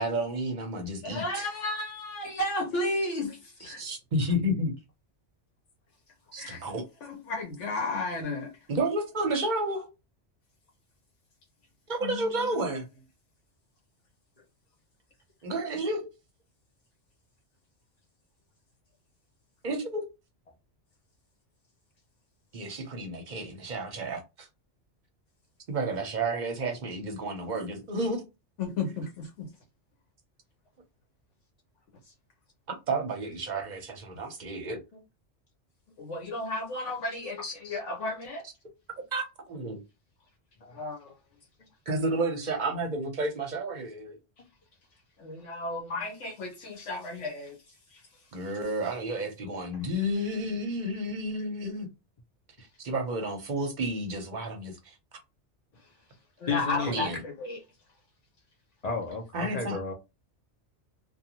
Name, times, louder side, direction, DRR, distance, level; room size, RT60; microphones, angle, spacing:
voice 1, 0.0-1.5 3.8-4.7 6.3-6.8 8.7-9.9 11.9-12.9 15.4-16.1 19.6-20.1 22.5-24.5 25.7-28.2 32.9-34.8 39.1-39.8 41.9-44.2 48.3-51.9 52.8-54.9 56.9-57.2 59.3-59.8, right 1 dB, 45° right, 0.7 m, -31 dB
voice 2, 1.0-3.8 6.4-6.7 7.0-8.6 12.0-12.6 28.6-29.5 36.0-38.4 40.7-41.1 45.2-48.2 55.8-55.9 56.4-57.6, left 2 dB, 80° left, 1.1 m, -34 dB
voice 3, 56.5-57.0 58.8-59.9, left 4 dB, 40° left, 0.7 m, -32 dB
2.5 x 2.3 x 2.8 m
omnidirectional pair, 1.2 m